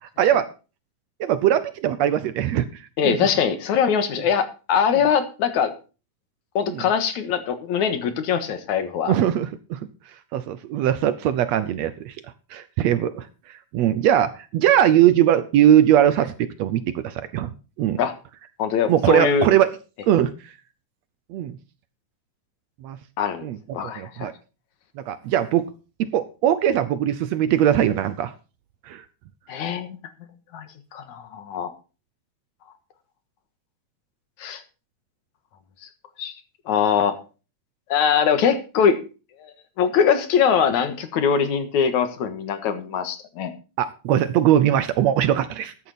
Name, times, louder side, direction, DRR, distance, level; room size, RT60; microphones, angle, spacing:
voice 1, 1.2-3.2 4.9-5.0 6.7-6.8 9.1-9.9 10.3-12.2 12.5-17.5 17.8-18.0 18.9-19.7 20.0-20.5 21.3-21.6 22.8-23.0 23.4-23.6 24.0-24.3 25.0-25.7 26.0-28.3 28.9-29.0 43.8-45.7, right 11 dB, 70° right, 13 dB, 1.8 m, -20 dB
voice 2, 3.0-5.7 6.6-9.1 18.0-18.1 18.6-19.5 23.2-23.5 23.7-24.3 29.5-30.0 30.5-30.7 30.9-31.7 34.4-34.6 36.2-36.3 36.7-37.2 37.9-39.0 39.4-39.5 39.8-43.5, left 7 dB, 70° left, 10 dB, 2.8 m, -22 dB
14.0 x 10.5 x 4.1 m, 0.33 s
omnidirectional pair, 3.5 m